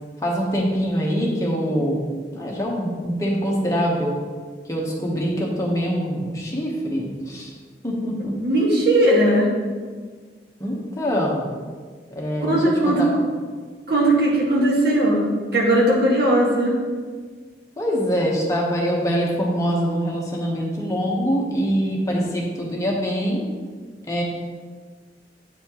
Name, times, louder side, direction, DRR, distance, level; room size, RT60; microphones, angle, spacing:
voice 1, 0.2-2.0 2.3-4.2 4.6-7.5 7.8-8.3 10.6-11.5 12.1-13.1 17.8-23.4 24.1-24.2, equal, 20° left, -3 dB, 1.0 m, -24 dB
voice 2, 8.4-9.5 12.4-13.1 13.9-15.3 15.5-16.7, right 1 dB, 60° right, -4 dB, 1.6 m, -18 dB
8.4 x 4.3 x 3.0 m, 1.5 s
head